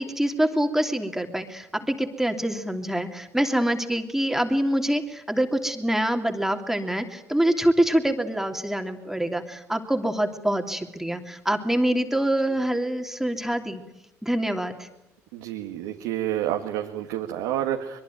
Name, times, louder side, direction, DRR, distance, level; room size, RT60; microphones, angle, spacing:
voice 1, 0.0-13.8 14.2-14.9, right 1 dB, 5° right, 4 dB, 3.0 m, -25 dB
voice 2, 15.3-18.0, right 11 dB, 85° right, 3 dB, 1.9 m, -29 dB
23.5 x 23.0 x 9.3 m, 0.91 s
supercardioid pair, 65°, 7 cm